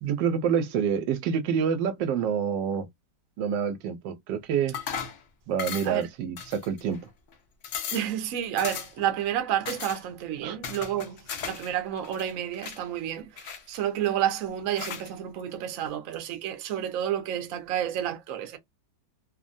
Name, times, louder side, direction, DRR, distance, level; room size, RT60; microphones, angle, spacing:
voice 1, 0.0-2.9 3.4-4.8 5.5-7.1 10.4-10.6, right 7 dB, 85° right, 1.3 m, -27 dB
sound 1, 4.7-5.2 5.6-6.0 6.4-7.0 7.3-7.4 7.6-8.1 8.6-9.1 9.7-10.0 10.6-11.7 12.0-12.8 13.4-14.1 14.8-15.1, left 7 dB, 75° left, 0.7 m, -36 dB
voice 2, 7.9-18.6, right 10 dB, 60° right, 0.9 m, -30 dB
3.2 x 2.1 x 2.5 m
omnidirectional pair, 1.9 m